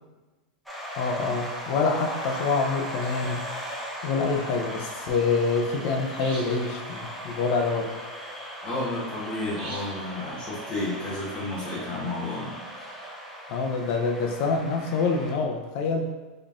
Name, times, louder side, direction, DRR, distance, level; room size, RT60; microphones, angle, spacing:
sound 1, 0.7-15.3, equal, ahead, 0.8 m, -38 dB
voice 1, 1.0-3.4 4.0-7.9 13.5-16.1, left 4 dB, 55° left, 2 dB, 0.6 m, -26 dB
sound 2, 3.0-3.3 6.2-6.8 9.6-10.1, right 3 dB, 45° right, 1.2 m, -42 dB
voice 2, 8.6-12.5 12.9-13.0, left 2 dB, 25° left, -5 dB, 1.4 m, -32 dB
4.0 x 3.2 x 2.5 m, 1.2 s
hypercardioid pair, 125°, 4 cm